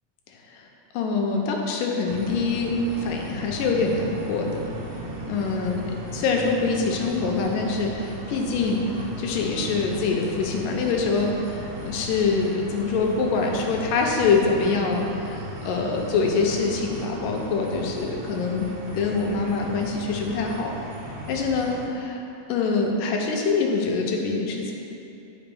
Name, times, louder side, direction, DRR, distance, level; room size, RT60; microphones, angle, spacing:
voice 1, 0.9-4.5 5.3-18.7 18.9-20.8 21.3-22.2 22.5-24.7, left 4 dB, 90° left, 0 dB, 2.4 m, -25 dB
sound 1, 2.1-21.9, right 1 dB, 90° right, 2.6 m, -37 dB
10.5 x 5.2 x 3.5 m, 2.8 s
omnidirectional pair, 3.8 m